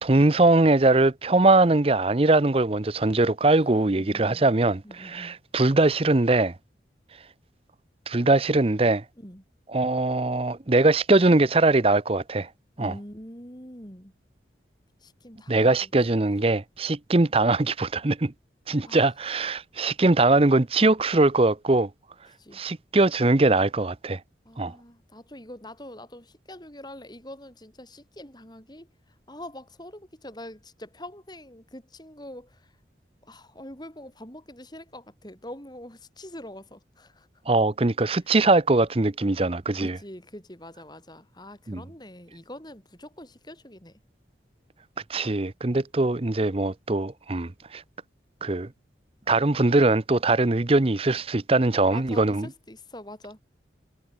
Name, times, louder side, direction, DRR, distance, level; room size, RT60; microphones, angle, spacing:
voice 1, 0.0-6.5 8.1-9.0 9.7-12.5 12.8-12.9 15.5-18.3 18.7-21.9 22.5-24.2 24.6-24.7 37.5-40.0 41.7-41.8 45.1-47.8 48.4-48.7 49.3-52.5, right 2 dB, 30° right, 0.7 m, -21 dB
voice 2, 3.6-4.5 4.8-5.4 9.2-9.4 12.8-14.1 15.0-15.9 18.8-19.1 22.3-22.6 24.5-28.9 29.3-32.7 33.2-37.3 38.1-38.2 39.8-44.0 51.9-53.4, left 1 dB, 25° left, 7.2 m, -44 dB
head